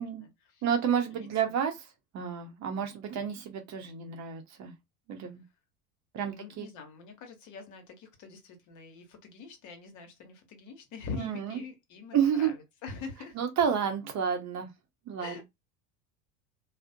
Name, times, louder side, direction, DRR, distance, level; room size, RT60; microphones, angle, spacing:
voice 1, 0.0-0.6 1.1-1.6 6.3-13.4 15.2-15.4, left 4 dB, 45° left, 0.9 m, -44 dB
voice 2, 0.6-1.9 2.1-4.7 5.1-5.4 6.1-6.7 11.2-11.6 12.1-12.5 13.4-14.7 15.1-15.4, right 8 dB, 40° right, 0.7 m, -30 dB
2.4 x 2.1 x 2.5 m
hypercardioid pair, 80°, 41 cm